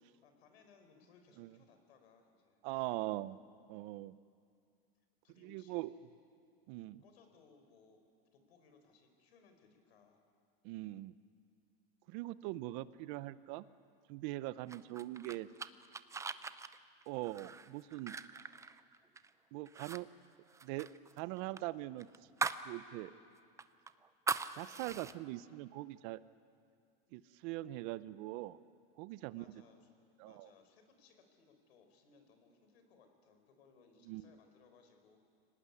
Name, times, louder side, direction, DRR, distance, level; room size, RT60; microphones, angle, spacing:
voice 1, 0.2-3.2 5.2-5.9 7.0-8.0 8.3-10.2 29.3-29.9 30.2-35.2, left 5 dB, 85° left, 6 dB, 4.6 m, -65 dB
voice 2, 2.6-3.4 3.7-4.2 5.4-5.9 6.7-7.0 10.6-11.2 12.1-13.7 14.1-15.5 17.1-18.2 19.5-20.1 20.6-20.9 21.2-22.1 22.6-23.1 24.6-26.2 27.1-28.6 29.0-29.5 30.2-30.5 34.0-34.3, right 17 dB, 55° right, 17 dB, 0.8 m, -42 dB
sound 1, 14.7-19.3 19.7-20.0 20.3-22.7 23.1-23.2 23.6-25.1, right 4 dB, 10° right, 0.5 m, -41 dB
24.5 x 18.5 x 9.9 m, 2.3 s
supercardioid pair, 130°, 30 cm